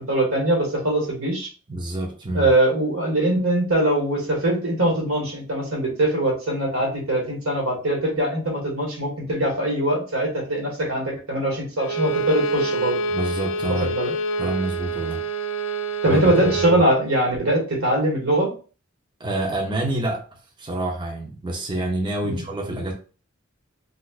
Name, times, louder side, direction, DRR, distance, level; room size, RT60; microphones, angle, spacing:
voice 1, 0.0-1.5 2.3-13.0 13.8-14.1 16.0-18.5 22.2-22.4, right 1 dB, 85° right, 1.6 m, -22 dB
voice 2, 1.7-2.5 13.1-13.9 14.4-15.2 16.1-16.8 19.2-20.3 20.6-22.9, right 1 dB, 20° right, 0.5 m, -27 dB
Bowed string instrument, 11.8-16.8, right 3 dB, 65° left, 0.3 m, -27 dB
4.1 x 2.4 x 2.4 m
head